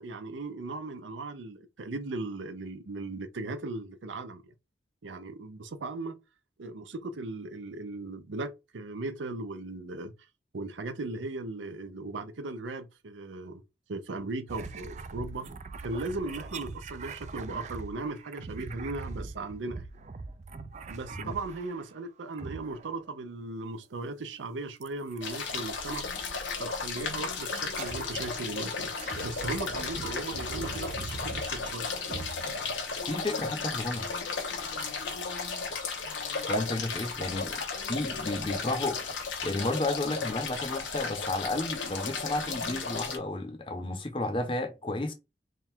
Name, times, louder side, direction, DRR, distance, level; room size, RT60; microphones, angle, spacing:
voice 1, 0.0-4.5 5.0-6.2 6.6-10.1 10.5-13.6 13.9-15.5 15.8-19.9 20.9-26.1 26.6-28.9 29.2-31.9, right 2 dB, 90° right, 0.6 m, -37 dB
sound 1, 14.5-21.9 22.3-23.1 24.8-25.2 26.2-26.4 27.5-28.3 28.8-33.1, right 4 dB, 40° right, 0.3 m, -42 dB
sound 2, 25.2-43.2, left 4 dB, 90° left, 1.0 m, -34 dB
voice 2, 33.1-34.1 36.5-37.6 37.9-45.1, left 2 dB, 30° left, 0.7 m, -32 dB
3.7 x 2.3 x 4.3 m
head